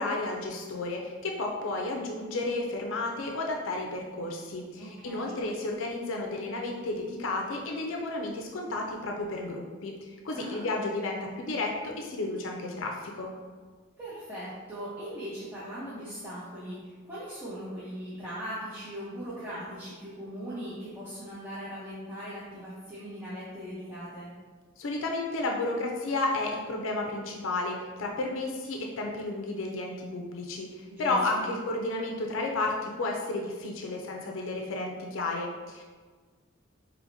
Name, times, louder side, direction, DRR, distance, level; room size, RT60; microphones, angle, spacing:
voice 1, 0.0-13.3 24.8-35.8, left 2 dB, 75° left, 1 dB, 0.4 m, -32 dB
voice 2, 4.8-5.4 10.3-10.6 14.0-24.3 30.9-31.5, equal, 10° right, -11 dB, 0.7 m, -39 dB
4.8 x 3.0 x 2.6 m, 1.5 s
head